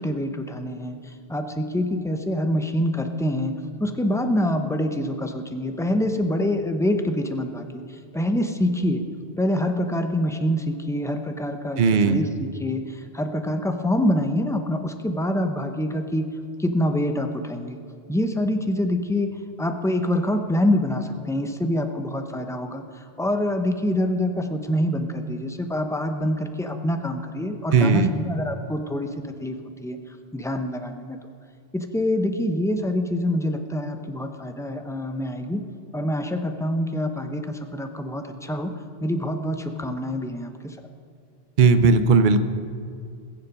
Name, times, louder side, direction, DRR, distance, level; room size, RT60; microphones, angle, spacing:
voice 1, 0.0-9.0 9.4-16.3 16.6-17.8 18.1-19.3 19.6-29.6 29.8-30.0 30.3-31.2 31.7-35.6 35.9-38.7 39.0-40.8, left 1 dB, 5° left, 6 dB, 0.7 m, -26 dB
voice 2, 11.8-12.2 27.7-28.1 41.6-42.4, right 4 dB, 55° right, 10 dB, 0.8 m, -17 dB
21.0 x 7.2 x 5.3 m, 2.4 s
omnidirectional pair, 1.1 m